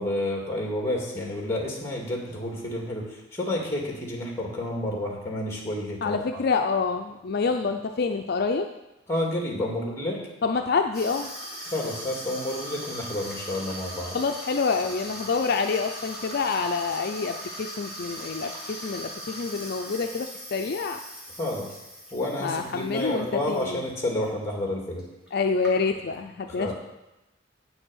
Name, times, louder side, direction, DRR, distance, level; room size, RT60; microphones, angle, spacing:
voice 1, 0.0-6.4 9.1-10.2 11.7-14.2 21.4-21.7 22.1-25.1 26.6-26.7, left 1 dB, 15° left, -1 dB, 2.1 m, -30 dB
voice 2, 6.0-8.7 10.4-11.3 14.1-21.0 22.4-23.8 25.3-26.7, left 4 dB, 55° left, 5 dB, 0.5 m, -27 dB
Water tap faucet / Sink (filling or washing), 10.9-23.6 24.0-24.3 25.0-25.1 25.3-26.1, equal, 5° right, 2.8 m, -39 dB
8.6 x 6.3 x 6.3 m, 0.96 s
head